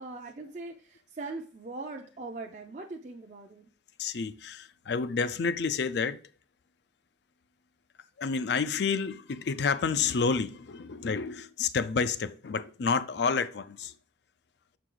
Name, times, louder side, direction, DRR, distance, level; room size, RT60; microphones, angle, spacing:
voice 1, 0.0-3.7, right 3 dB, 40° right, 0.5 m, -41 dB
voice 2, 4.0-6.2 8.2-13.9, left 5 dB, 65° left, 0.4 m, -29 dB
6.8 x 4.7 x 3.8 m
head